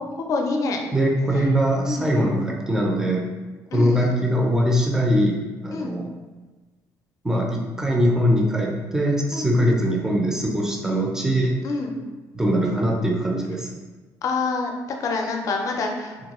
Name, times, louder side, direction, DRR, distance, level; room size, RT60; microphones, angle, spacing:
voice 1, 0.0-0.8 1.3-1.5 1.9-2.3 3.7-4.1 5.7-5.9 9.3-9.7 11.6-12.0 14.2-14.7 15.0-16.2, left 3 dB, 50° left, 3 dB, 0.4 m, -27 dB
voice 2, 0.9-3.3 3.7-6.1 7.2-11.6 12.3-13.7, equal, 5° right, -1 dB, 0.4 m, -22 dB
3.5 x 2.2 x 2.9 m, 1.2 s
cardioid pair, 135°, 7 cm